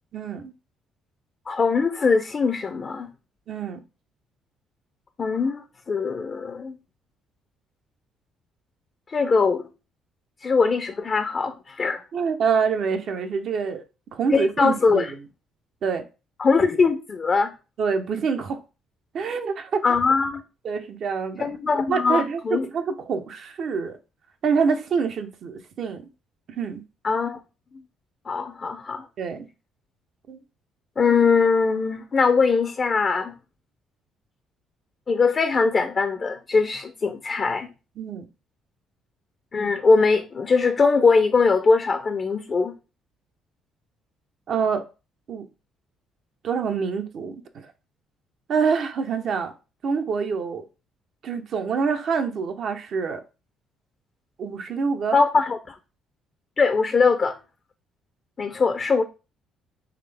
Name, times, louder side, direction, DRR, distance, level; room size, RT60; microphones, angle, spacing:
voice 1, 0.1-0.5 3.5-3.8 12.1-13.8 14.1-15.1 15.8-16.0 17.8-18.6 19.1-19.8 20.6-21.5 21.9-24.0 24.4-26.0 26.6-26.8 29.2-29.5 30.3-30.4 38.0-38.2 44.5-44.8 45.3-45.5 46.4-47.7 48.5-49.5 49.8-50.6 51.2-53.2 54.4-55.2, right 5 dB, 60° right, 0.7 m, -26 dB
voice 2, 1.5-3.1 5.2-6.8 9.1-9.7 10.4-12.0 14.2-15.1 16.4-17.5 19.8-20.4 21.4-22.7 27.0-27.4 28.3-29.1 31.0-33.3 35.1-37.7 39.5-42.7 55.1-55.8 56.6-57.4 58.4-59.0, left 4 dB, 40° left, 0.5 m, -21 dB
3.7 x 3.4 x 3.4 m
supercardioid pair, 75°, 0 cm